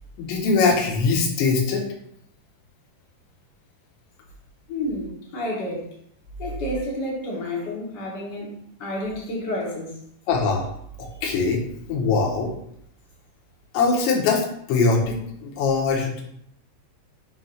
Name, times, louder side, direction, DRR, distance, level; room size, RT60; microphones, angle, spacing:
voice 1, 0.2-1.8 10.3-10.7 11.0-11.6 11.9-12.5 13.7-16.2, left 4 dB, 75° left, -2 dB, 3.6 m, -22 dB
voice 2, 4.7-5.9 6.4-9.9, left 1 dB, 60° left, -4 dB, 1.0 m, -30 dB
8.7 x 3.0 x 5.6 m, 0.72 s
omnidirectional pair, 5.3 m